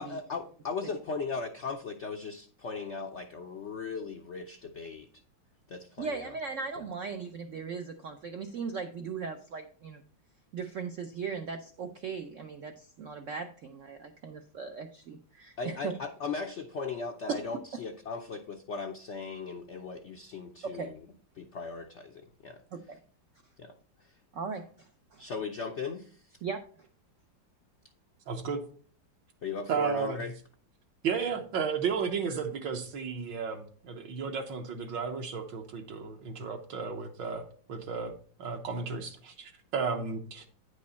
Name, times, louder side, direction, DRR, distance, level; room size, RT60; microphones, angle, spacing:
voice 1, 0.0-5.1 5.7-6.4 6.8-6.9 15.6-21.1 21.3-22.6 22.9-23.0 23.6-23.7 24.0-24.2 25.2-26.4 29.4-30.3, left 4 dB, 85° left, 4 dB, 0.6 m, -38 dB
voice 2, 6.0-10.0 10.5-15.7 20.7-20.9 22.9-23.0 24.3-24.6 25.1-25.2 26.4-26.6, right 5 dB, 90° right, 6 dB, 0.6 m, -38 dB
voice 3, 28.3-28.7 29.7-30.2 31.0-38.1 38.4-40.5, right 6 dB, 70° right, 3 dB, 1.5 m, -33 dB
9.4 x 5.3 x 4.1 m, 0.44 s
omnidirectional pair, 2.1 m